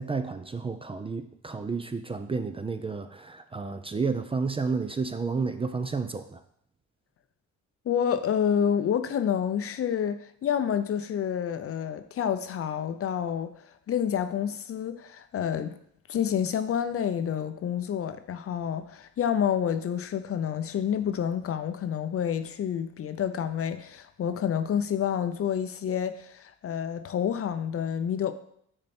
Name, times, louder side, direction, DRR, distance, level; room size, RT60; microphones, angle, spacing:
voice 1, 0.0-6.4, right 4 dB, 20° right, 9 dB, 0.4 m, -31 dB
voice 2, 7.9-13.5 13.9-15.7 16.1-28.3, left 8 dB, 50° left, 11 dB, 0.6 m, -28 dB
6.5 x 4.5 x 4.3 m, 0.69 s
cardioid pair, 90°, 30 cm